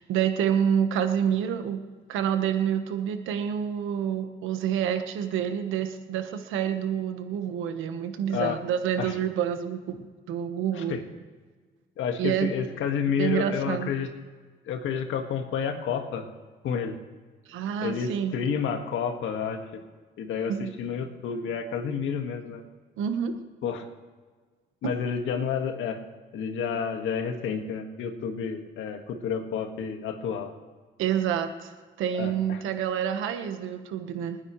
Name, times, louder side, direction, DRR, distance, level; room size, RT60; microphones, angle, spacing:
voice 1, 0.0-1.8 2.1-11.0 12.2-12.5 13.2-13.9 17.5-18.4 20.5-20.7 23.0-23.4 24.8-24.9 31.0-31.7 32.0-34.4, right 9 dB, 90° right, 7 dB, 1.3 m, -28 dB
voice 2, 12.0-14.1 14.7-16.3 16.6-17.0 17.8-19.8 20.2-22.6 23.6-23.8 24.8-26.0 26.3-30.5 32.2-32.6, left 7 dB, 80° left, 5 dB, 1.8 m, -30 dB
27.5 x 9.7 x 3.2 m, 1.4 s
cardioid pair, 90°, 20 cm